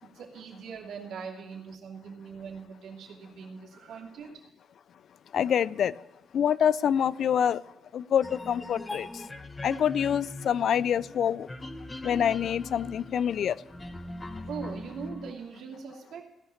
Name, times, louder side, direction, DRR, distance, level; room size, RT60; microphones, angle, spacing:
voice 1, 0.0-4.4 14.5-16.2, right 6 dB, 75° right, 2.6 m, -41 dB
voice 2, 5.3-5.9 6.3-7.6 7.9-9.1 9.6-11.5 12.0-13.5, left 8 dB, 65° left, 0.4 m, -26 dB
sound 1, 8.2-15.3, left 2 dB, 20° left, 1.0 m, -41 dB
16.0 x 5.7 x 7.1 m
cardioid pair, 90°, 0 cm